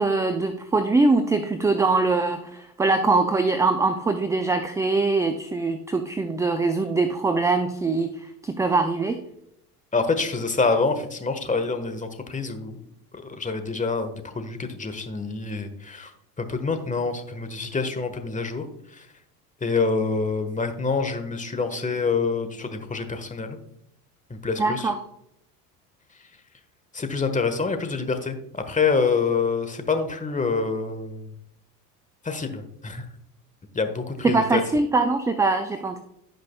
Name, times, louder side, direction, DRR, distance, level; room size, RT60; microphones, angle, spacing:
voice 1, 0.0-9.2 24.6-24.9 34.2-36.0, right 3 dB, 5° right, 8 dB, 0.3 m, -22 dB
voice 2, 9.9-12.9 13.1-16.1 16.4-19.1 19.6-23.6 24.3-24.9 26.9-31.3 32.2-33.0 33.7-34.6, left 4 dB, 15° left, 7 dB, 1.3 m, -26 dB
16.0 x 5.3 x 2.2 m, 0.77 s
hypercardioid pair, 70°, 48 cm